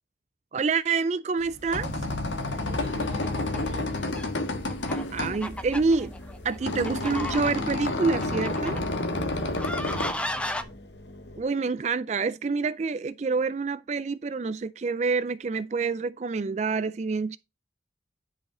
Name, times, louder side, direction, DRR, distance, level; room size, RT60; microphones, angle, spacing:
voice 1, 0.5-1.9 5.1-6.1 6.4-8.8 11.4-17.4, right 4 dB, 35° right, 0.4 m, -27 dB
sound 1, 1.4-10.1, left 2 dB, 85° left, 1.4 m, -30 dB
voice 2, 2.7-3.9 6.7-6.8 9.0-10.8, right 2 dB, 35° left, 5.9 m, -45 dB
sound 2, 3.1-3.8 4.2-4.3 4.7-7.7 8.2-8.8 9.6-10.6, left 1 dB, 5° left, 0.6 m, -34 dB
Engine, 5.0-11.4, left 1 dB, 65° left, 1.0 m, -46 dB
10.5 x 5.0 x 3.8 m
head